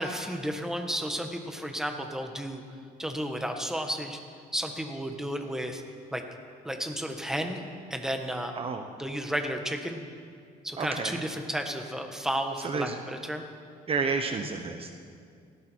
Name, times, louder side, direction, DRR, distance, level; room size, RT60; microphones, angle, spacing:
voice 1, 0.0-2.6 3.0-4.2 4.5-5.8 6.1-6.2 6.6-7.6 7.9-8.5 9.0-10.0 10.6-13.5 14.4-14.5, equal, 5° right, 4 dB, 1.6 m, -32 dB
voice 2, 10.8-11.2 12.6-13.0 13.9-14.9, right 4 dB, 35° right, 6 dB, 1.1 m, -30 dB
18.0 x 17.0 x 4.7 m, 2.3 s
cardioid pair, 110°, 17 cm